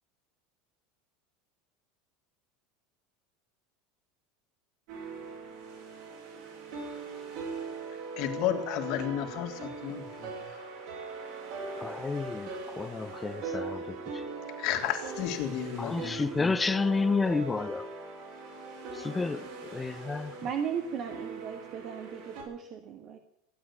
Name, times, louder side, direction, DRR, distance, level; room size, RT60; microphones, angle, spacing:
sound 1, 4.9-22.4, right 4 dB, 70° right, 6.5 m, -40 dB
voice 1, 8.2-10.3 14.6-16.5, left 11 dB, 65° left, 3.0 m, -33 dB
voice 2, 11.8-12.5 12.8-14.0 15.8-17.9 19.0-19.5 19.7-20.3, left 4 dB, 15° left, 0.9 m, -30 dB
voice 3, 20.4-23.2, right 7 dB, 50° right, 1.7 m, -36 dB
15.5 x 9.2 x 9.9 m
supercardioid pair, 100°, 0 cm